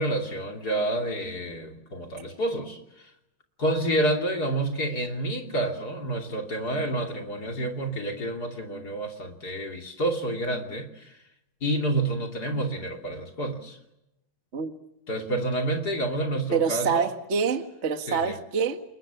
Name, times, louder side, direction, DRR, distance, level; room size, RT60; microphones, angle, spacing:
voice 1, 0.0-2.8 3.6-11.1 11.6-13.8 15.1-17.1 18.1-18.3, right 1 dB, 30° left, 3 dB, 2.9 m, -29 dB
voice 2, 16.5-18.8, right 6 dB, 40° right, 6 dB, 1.0 m, -26 dB
29.5 x 21.0 x 7.4 m, 0.86 s
omnidirectional pair, 4.1 m